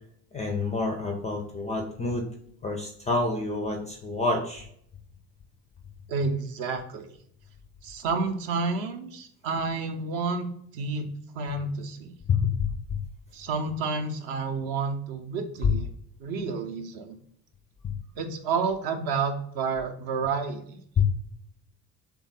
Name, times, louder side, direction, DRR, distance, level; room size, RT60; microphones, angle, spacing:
voice 1, 0.3-2.3 2.6-4.7 12.4-12.5 21.0-21.1, left 3 dB, 15° left, 2 dB, 0.4 m, -28 dB
voice 2, 6.1-7.1 7.8-10.5 10.7-11.1 11.3-12.1 13.3-15.9 16.2-17.2 18.2-20.8, right 4 dB, 45° right, 5 dB, 0.7 m, -30 dB
3.4 x 2.2 x 4.3 m, 0.66 s
figure-of-eight pair, 55°, 49 cm